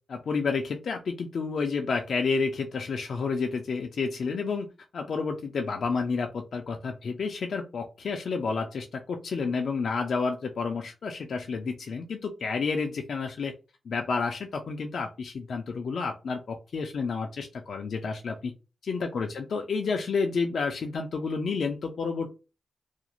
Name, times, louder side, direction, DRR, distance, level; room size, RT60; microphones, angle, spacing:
voice 1, 0.1-4.7 4.9-13.5 13.9-18.5 18.8-22.3, left 4 dB, 70° left, 4 dB, 0.3 m, -30 dB
2.4 x 2.0 x 2.8 m, 0.31 s
cardioid pair, 65°, 0 cm